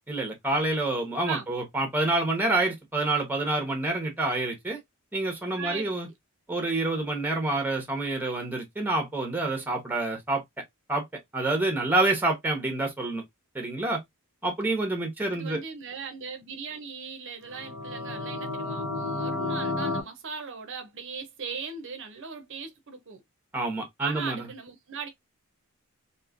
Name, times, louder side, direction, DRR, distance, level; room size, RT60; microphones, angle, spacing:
voice 1, 0.1-4.8 5.1-6.1 6.5-10.4 10.9-11.0 11.3-13.2 13.5-14.0 14.4-15.6 23.5-24.5, right 2 dB, 10° right, 0.9 m, -27 dB
voice 2, 5.6-5.9 15.3-23.2 24.0-25.1, right 5 dB, 55° right, 0.6 m, -38 dB
sound 1, 17.4-20.0, left 2 dB, 60° left, 0.8 m, -31 dB
3.0 x 2.7 x 2.4 m
head